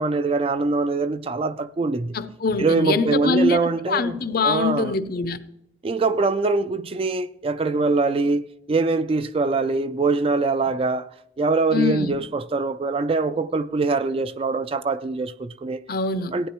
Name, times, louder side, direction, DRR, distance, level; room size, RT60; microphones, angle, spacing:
voice 1, 0.0-2.2 2.6-4.2 4.4-4.9 5.8-11.1 11.4-15.8 16.3-16.5, right 3 dB, 30° right, 0.3 m, -23 dB
voice 2, 2.1-5.4 11.7-12.2 15.9-16.3, left 4 dB, 50° left, 0.6 m, -24 dB
16.0 x 9.3 x 3.0 m
head